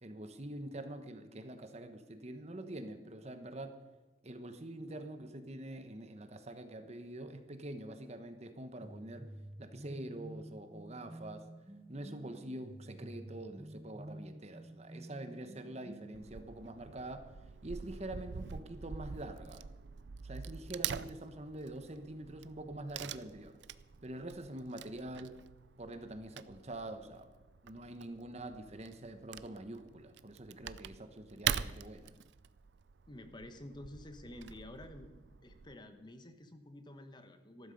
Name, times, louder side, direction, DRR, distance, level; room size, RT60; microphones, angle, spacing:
voice 1, 0.0-3.7 4.2-9.3 9.6-11.4 11.9-17.3 17.6-19.7 20.2-23.6 24.0-25.3 25.8-27.3 27.6-32.1, right 1 dB, 35° right, 8 dB, 1.1 m, -45 dB
sound 1, 8.8-16.4, right 1 dB, 15° right, 0.5 m, -50 dB
Wood / Tearing, 16.1-35.8, right 8 dB, 75° right, 0.5 m, -44 dB
voice 2, 33.1-37.7, left 1 dB, 25° left, 8 dB, 1.1 m, -50 dB
14.0 x 12.0 x 5.3 m, 1.2 s
head